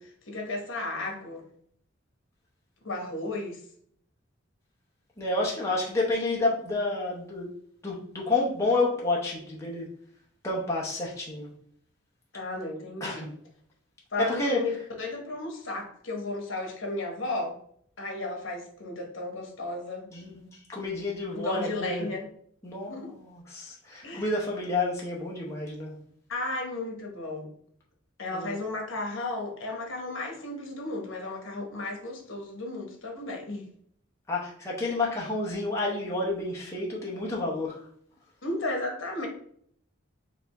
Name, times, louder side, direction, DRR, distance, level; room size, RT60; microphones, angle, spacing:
voice 1, 0.0-1.4 2.8-3.6 12.3-13.3 14.1-17.6 18.0-20.0 21.3-22.3 22.9-23.1 24.0-24.3 26.3-27.5 28.2-33.7 38.4-39.3, left 2 dB, 70° left, 1 dB, 1.2 m, -34 dB
voice 2, 5.2-7.5 7.8-9.9 10.4-11.5 13.0-13.3 14.2-14.6 20.1-22.1 22.6-26.0 28.3-28.5 34.3-37.8, left 2 dB, 15° left, -4 dB, 0.8 m, -30 dB
4.9 x 2.6 x 3.4 m, 0.63 s
head